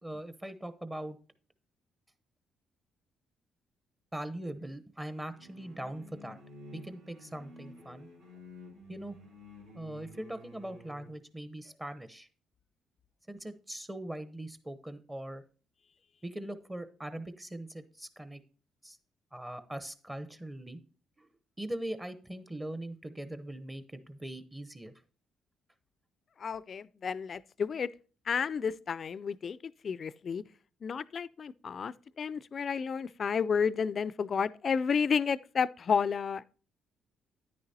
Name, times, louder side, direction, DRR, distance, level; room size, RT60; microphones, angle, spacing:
voice 1, 0.0-1.2 4.1-6.4 6.7-8.1 8.9-9.2 9.7-12.3 13.3-15.4 16.2-18.4 18.8-19.0 19.3-20.8 21.2-21.3 21.6-24.9, right 1 dB, 15° right, 0.9 m, -41 dB
sound 1, 5.3-11.2, left 1 dB, 85° right, 3.9 m, -51 dB
voice 2, 26.4-27.9 28.3-30.4 30.8-36.4, left 6 dB, 50° left, 0.4 m, -31 dB
9.8 x 9.6 x 2.8 m
hypercardioid pair, 50°, 0 cm